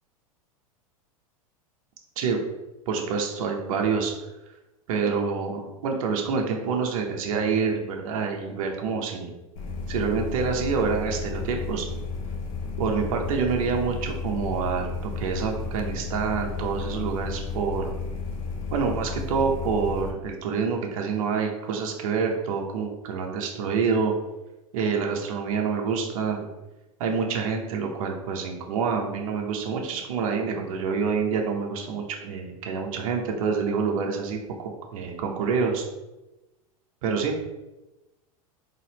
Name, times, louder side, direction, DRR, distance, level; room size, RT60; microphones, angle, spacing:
voice 1, 2.9-4.1 4.9-9.3 9.9-11.9 12.8-17.9 18.7-24.1 24.7-26.4 27.0-35.8 37.0-37.3, right 5 dB, 65° right, 2 dB, 0.8 m, -27 dB
sound 1, 9.6-20.1, left 4 dB, 65° left, 1.0 m, -33 dB
4.1 x 3.0 x 2.8 m, 1.0 s
hypercardioid pair, 95°, 19 cm